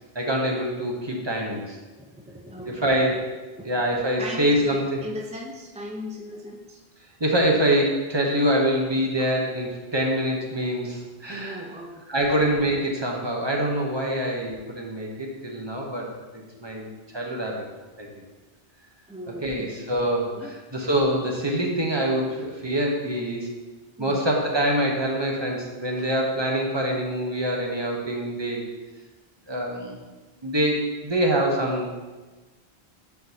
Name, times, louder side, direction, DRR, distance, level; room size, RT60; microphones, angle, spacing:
voice 1, 0.1-1.8 2.7-3.3 3.6-5.0 7.2-11.6 12.1-17.6 18.0-18.1 19.3-23.5 24.0-28.6 29.5-30.0 30.4-31.9, right 1 dB, 25° right, 0 dB, 0.9 m, -25 dB
voice 2, 2.0-3.2 3.6-3.7 4.2-6.8 9.2-9.3 11.3-11.9 19.1-19.8 20.3-20.5 24.0-24.2 26.0-26.1, equal, 10° right, -1 dB, 0.4 m, -37 dB
9.9 x 4.7 x 2.8 m, 1.2 s
omnidirectional pair, 1.1 m